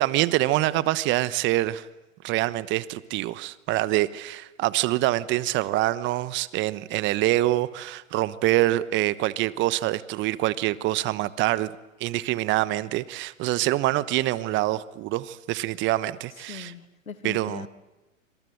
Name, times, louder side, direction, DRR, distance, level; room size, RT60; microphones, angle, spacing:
voice 1, 0.0-1.9 2.2-11.7 12.0-16.7 17.2-17.7, right 16 dB, 30° right, 17 dB, 1.1 m, -25 dB
voice 2, 16.5-17.7, left 6 dB, 90° left, 12 dB, 2.0 m, -40 dB
26.5 x 26.0 x 7.9 m, 1.1 s
hypercardioid pair, 115°, 40 cm